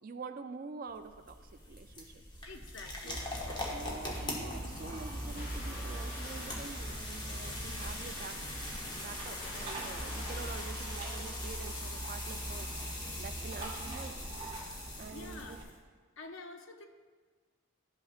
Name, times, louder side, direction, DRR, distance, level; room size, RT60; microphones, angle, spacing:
voice 1, 0.0-2.1 3.0-3.2 3.7-8.6 9.0-12.7 13.2-14.2 15.0-15.6, right 4 dB, 45° right, 9 dB, 0.3 m, -46 dB
sound 1, 0.9-15.8, left 1 dB, 20° left, 0.9 m, -42 dB
voice 2, 2.4-3.4 15.1-15.6 16.2-16.9, left 3 dB, 70° left, 5 dB, 0.6 m, -48 dB
sound 2, 3.1-15.6, right 1 dB, 25° right, 1.1 m, -43 dB
Water, 5.2-8.0 9.2-12.0, left 1 dB, 45° left, 1.4 m, -50 dB
12.0 x 5.6 x 2.5 m, 1.5 s
head